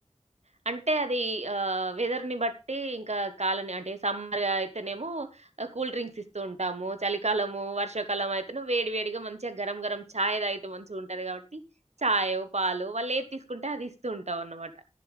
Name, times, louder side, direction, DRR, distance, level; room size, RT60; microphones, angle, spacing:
voice 1, 0.6-11.6 12.0-14.7, right 2 dB, 70° right, 10 dB, 1.2 m, -31 dB
11.0 x 9.9 x 3.4 m, 0.28 s
wide cardioid pair, 40°, 12 cm